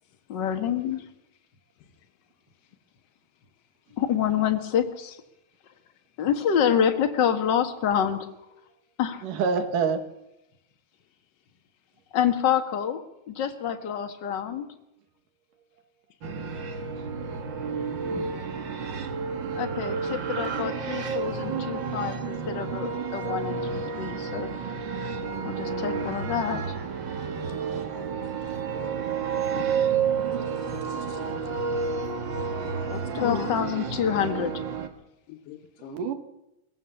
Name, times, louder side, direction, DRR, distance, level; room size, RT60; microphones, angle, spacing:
voice 1, 0.3-1.0 4.0-5.2 6.2-8.3 9.0-9.2 12.1-14.7 19.5-24.5 25.0-25.1 25.4-26.8 33.1-34.6, left 8 dB, 45° left, 7 dB, 1.7 m, -27 dB
voice 2, 9.2-10.0 16.9-17.0 28.7-29.1 35.9-36.1, right 5 dB, 80° right, 8 dB, 3.3 m, -27 dB
sound 1, 16.2-34.9, right 6 dB, 45° right, 1.7 m, -30 dB
voice 3, 18.0-18.4 28.2-28.3 29.6-29.7 30.3-31.2 32.9-33.7 35.3-36.0, left 12 dB, 85° left, 4 dB, 2.7 m, -39 dB
22.0 x 18.5 x 7.2 m, 0.89 s
omnidirectional pair, 3.8 m